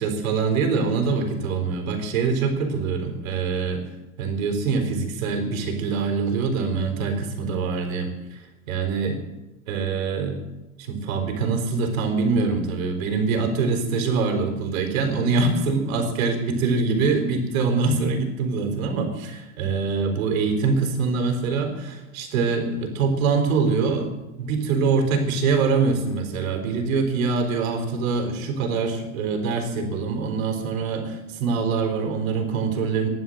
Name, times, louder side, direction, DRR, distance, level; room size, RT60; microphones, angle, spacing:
voice 1, 0.0-3.8 4.2-8.4 8.7-9.2 9.7-10.4 10.8-24.1 24.4-33.1, right 4 dB, 75° right, 5 dB, 4.0 m, -24 dB
15.5 x 11.0 x 7.8 m, 1.0 s
supercardioid pair, 160°, 41 cm